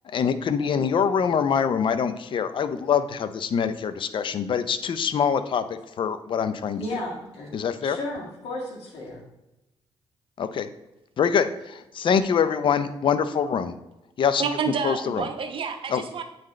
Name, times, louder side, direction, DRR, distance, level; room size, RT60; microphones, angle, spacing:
voice 1, 0.1-6.8 7.5-8.0 10.4-10.7 11.2-13.7 14.2-14.5 14.8-15.2 15.9-16.2, left 7 dB, 55° left, 12 dB, 0.5 m, -24 dB
voice 2, 6.8-7.5 7.8-9.2, left 1 dB, 75° left, -1 dB, 1.9 m, -33 dB
voice 3, 14.4-16.2, right 6 dB, 60° right, 6 dB, 0.9 m, -29 dB
8.5 x 3.9 x 3.2 m, 0.94 s
cardioid pair, 80°, 10 cm